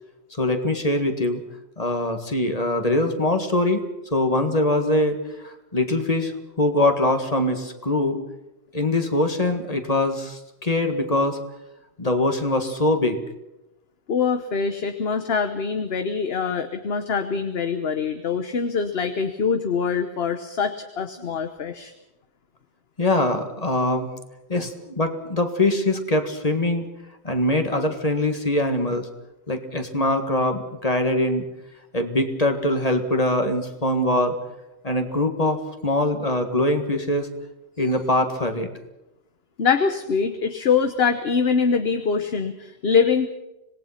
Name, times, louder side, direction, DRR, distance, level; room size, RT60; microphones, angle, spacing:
voice 1, 0.3-1.4 1.8-3.8 4.1-8.2 8.7-11.4 12.0-13.2 21.2-21.3 23.0-24.1 24.5-26.9 27.2-29.1 29.5-31.4 31.9-34.4 34.8-37.3 37.8-38.7, left 1 dB, 35° left, 6 dB, 1.9 m, -23 dB
voice 2, 14.1-21.9 24.6-24.7 39.6-43.3, left 5 dB, 60° left, 8 dB, 1.3 m, -24 dB
26.0 x 18.5 x 5.8 m, 0.95 s
omnidirectional pair, 1.2 m